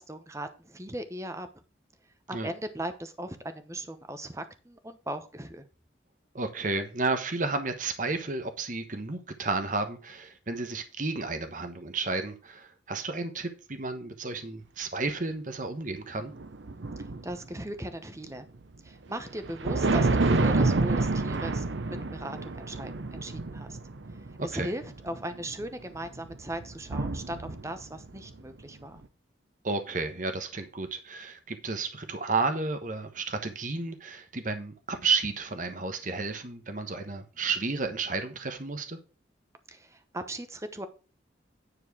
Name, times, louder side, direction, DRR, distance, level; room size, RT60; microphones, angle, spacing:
voice 1, 0.0-1.5 2.3-5.6 17.0-18.5 18.8-23.8 24.4-29.0 39.7-40.9, right 1 dB, 15° right, 0.9 m, -38 dB
voice 2, 6.3-16.3 24.5-24.7 29.6-39.0, right 3 dB, 45° right, 1.2 m, -32 dB
sound 1, 16.3-17.6 19.2-28.4, right 3 dB, 70° right, 0.8 m, -29 dB
10.0 x 4.5 x 6.1 m
head